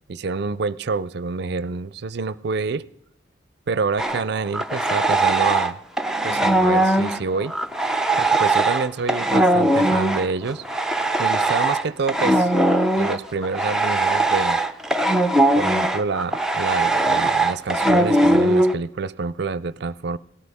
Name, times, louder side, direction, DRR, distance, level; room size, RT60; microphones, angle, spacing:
voice 1, 0.1-2.8 3.7-5.8 6.2-7.5 8.2-10.6 11.2-12.5 13.0-14.6 15.5-20.2, right 4 dB, 55° right, 0.4 m, -27 dB
sound 1, 4.0-5.7 6.0-18.7, right 2 dB, 5° right, 0.5 m, -20 dB
18.0 x 13.5 x 3.5 m
head